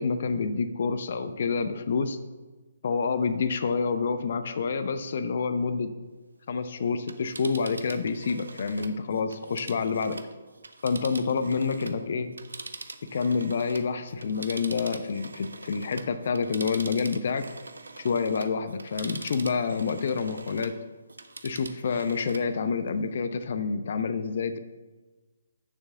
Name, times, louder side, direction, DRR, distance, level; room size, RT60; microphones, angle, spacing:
voice 1, 0.0-2.2 2.8-5.9 6.5-10.2 10.8-12.3 13.1-17.5 18.0-20.7 21.4-24.6, left 5 dB, 50° left, 10 dB, 0.6 m, -28 dB
Telephone, 6.9-12.0 12.3-20.8 21.1-22.5 22.9-23.0, right 3 dB, 70° right, 0.8 m, -43 dB
7.1 x 6.7 x 6.7 m, 1.3 s
figure-of-eight pair, 135°, 0 cm